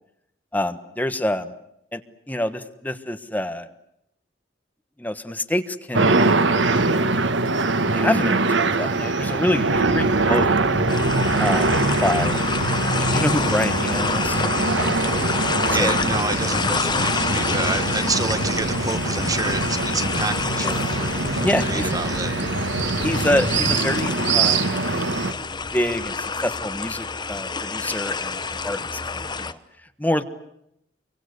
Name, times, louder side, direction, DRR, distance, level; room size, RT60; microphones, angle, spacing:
voice 1, 0.5-1.5 1.9-2.0 2.3-3.7 5.0-6.2 6.5-7.1 7.9-10.5 11.4-12.4 13.0-14.4 15.6-16.0 20.6-20.7 21.4-21.9 23.0-24.7 25.7-29.6 30.0-30.2, left 1 dB, 10° left, 9 dB, 1.4 m, -26 dB
sound 1, 5.9-25.3, right 3 dB, 90° right, 1.5 m, -23 dB
sound 2, 9.8-23.8, left 2 dB, 75° left, 1.3 m, -33 dB
sound 3, 10.9-29.5, left 4 dB, 25° left, 1.0 m, -28 dB
voice 2, 15.5-22.6, right 3 dB, 20° right, 11 dB, 1.1 m, -29 dB
26.5 x 24.0 x 8.2 m, 0.76 s
head